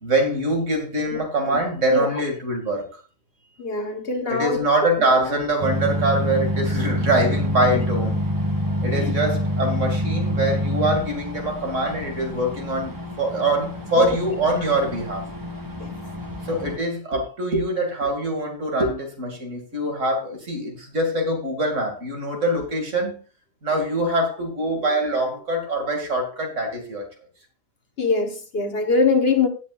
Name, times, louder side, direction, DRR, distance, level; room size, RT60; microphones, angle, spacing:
voice 1, 0.0-2.9 4.3-8.2 8.8-15.3 16.4-23.2 23.6-27.0, right 1 dB, 60° right, 2.9 m, -24 dB
voice 2, 3.6-4.6 5.0-5.1 7.7-7.8 8.8-9.1 14.0-14.1 15.8-15.9 28.0-29.5, left 3 dB, 50° left, 1.4 m, -22 dB
sound 1, 5.6-16.8, left 1 dB, 15° right, 1.3 m, -27 dB
17.0 x 8.3 x 2.5 m
omnidirectional pair, 1.4 m